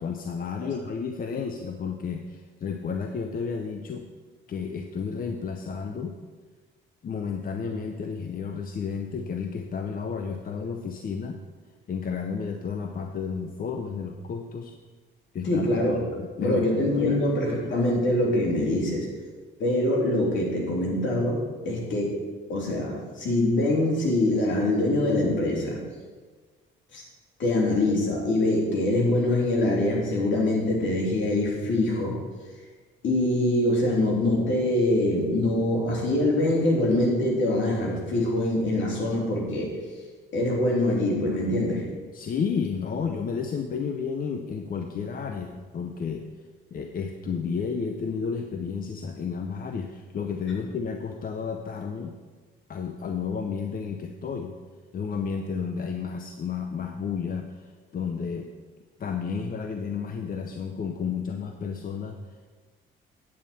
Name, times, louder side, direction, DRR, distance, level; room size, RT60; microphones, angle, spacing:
voice 1, 0.0-4.0 4.5-6.1 7.0-11.4 11.9-14.7 15.3-15.6 16.2-17.2 42.1-46.3 46.7-52.1 52.7-54.5 54.9-58.5 59.0-62.2, left 6 dB, 45° left, 5 dB, 0.7 m, -32 dB
voice 2, 15.4-16.0 16.4-19.1 19.6-22.2 22.5-25.8 26.9-27.0 27.4-32.1 33.0-39.8 40.3-41.9, left 1 dB, 70° left, -2 dB, 3.0 m, -24 dB
8.8 x 8.6 x 4.3 m, 1.4 s
cardioid pair, 90°, 20 cm